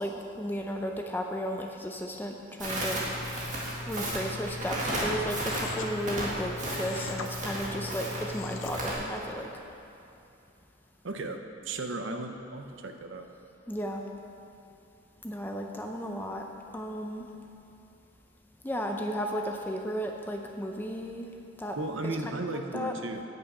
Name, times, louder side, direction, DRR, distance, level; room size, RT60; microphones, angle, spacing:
voice 1, 0.0-3.0 3.8-9.5 13.7-14.0 15.2-16.5 16.7-17.3 18.6-21.3 21.6-21.8 22.0-22.9, equal, 10° left, 2 dB, 0.5 m, -34 dB
Crackle, 2.6-8.9, right 1 dB, 35° right, 1.9 m, -33 dB
sound 1, 5.4-5.9 6.8-7.3 8.2-8.8, left 5 dB, 60° left, 0.7 m, -41 dB
voice 2, 11.0-11.4 11.6-13.3 21.8-23.3, right 2 dB, 55° right, 5 dB, 0.7 m, -35 dB
8.9 x 8.6 x 5.4 m, 2.8 s
head